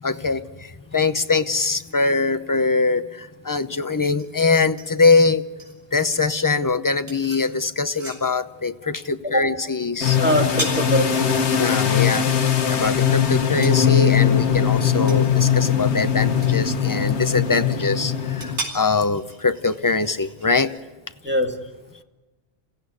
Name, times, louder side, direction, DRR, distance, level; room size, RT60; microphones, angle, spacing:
voice 1, 0.0-5.4 5.9-10.2 11.5-12.3 12.7-20.7, left 4 dB, 20° left, 11 dB, 0.6 m, -22 dB
sound 1, 3.5-20.8, right 1 dB, 80° right, 4.7 m, -39 dB
sound 2, 10.0-18.6, left 8 dB, 80° left, 1.5 m, -20 dB
voice 2, 10.2-11.3 21.2-21.6, equal, 10° right, 2 dB, 2.2 m, -22 dB
28.5 x 16.0 x 9.6 m, 1.2 s
omnidirectional pair, 1.1 m